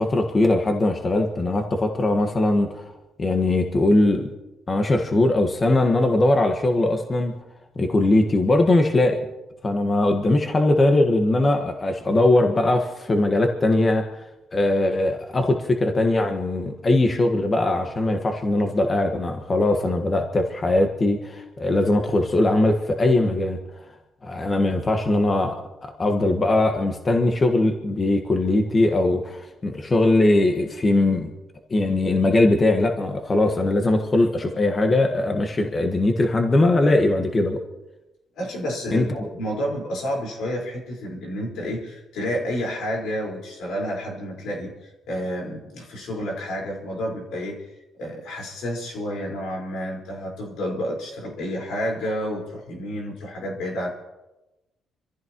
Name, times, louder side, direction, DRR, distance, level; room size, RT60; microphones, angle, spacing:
voice 1, 0.0-2.9 3.2-4.3 4.7-7.3 7.7-9.2 9.6-14.1 14.5-23.6 24.2-25.6 25.8-31.3 31.7-37.6 38.9-39.3, left 2 dB, 30° left, 3 dB, 1.5 m, -20 dB
voice 2, 38.4-47.6 48.0-53.9, equal, 85° left, -1 dB, 4.6 m, -30 dB
26.5 x 15.0 x 3.0 m, 1.0 s
cardioid pair, 90°, 0 cm